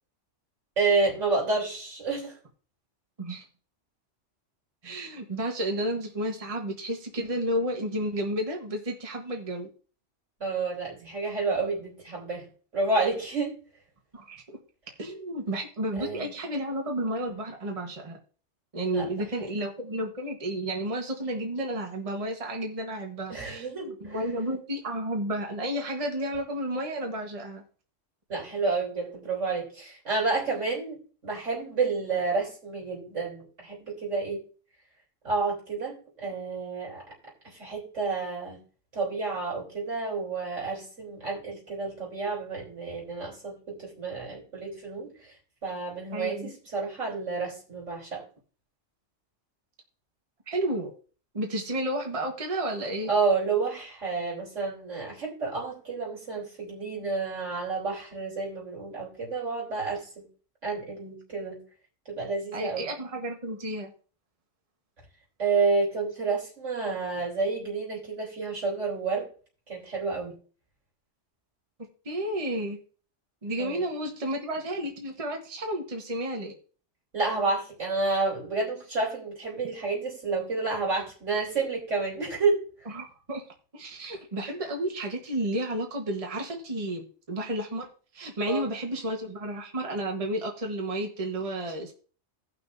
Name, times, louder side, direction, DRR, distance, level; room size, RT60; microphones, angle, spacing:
voice 1, 0.8-2.4 10.4-12.4 12.7-13.5 16.0-16.3 18.9-19.5 23.3-24.2 28.3-31.0 31.2-34.4 35.2-37.1 37.4-38.6 38.9-45.3 45.6-48.2 53.1-60.3 60.6-61.6 62.1-62.9 65.4-69.3 69.7-70.4 73.6-73.8 77.1-82.6 88.5-88.6, right 4 dB, 80° right, -2 dB, 3.7 m, -30 dB
voice 2, 4.8-9.7 14.1-14.6 15.0-18.2 18.7-27.6 46.1-46.5 50.5-50.9 51.3-53.1 62.5-63.9 72.0-72.8 73.4-76.5 82.9-83.4 83.7-87.9 88.1-91.9, right 1 dB, 30° right, 2 dB, 1.3 m, -32 dB
17.0 x 6.0 x 2.6 m, 0.40 s
omnidirectional pair, 1.2 m